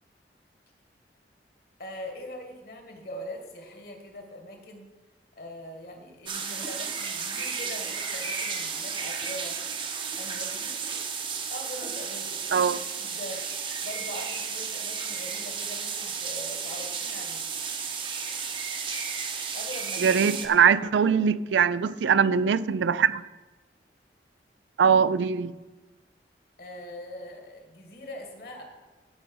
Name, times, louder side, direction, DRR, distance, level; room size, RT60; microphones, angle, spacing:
voice 1, 1.8-4.9 5.4-9.6 10.2-11.0 11.5-12.7 12.9-17.5 19.3-21.1 26.6-28.6, left 1 dB, 55° left, 3 dB, 1.8 m, -42 dB
sound 1, 6.3-20.5, right 6 dB, 30° right, 0.8 m, -33 dB
voice 2, 20.0-23.2 24.8-25.5, right 7 dB, 90° right, 16 dB, 0.4 m, -22 dB
13.5 x 5.3 x 5.4 m, 1.2 s
head